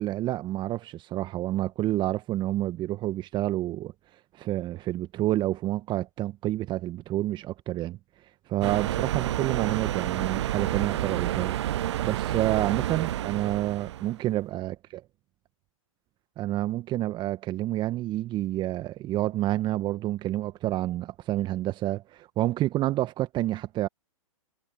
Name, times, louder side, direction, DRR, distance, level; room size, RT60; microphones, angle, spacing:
voice 1, 0.0-3.9 4.3-8.0 8.5-11.5 12.0-14.7 16.4-23.9, right 15 dB, 25° right, 1.6 m, -29 dB
sound 1, 8.6-14.2, right 13 dB, 55° right, 0.9 m, -29 dB
figure-of-eight pair, 115°, 17 cm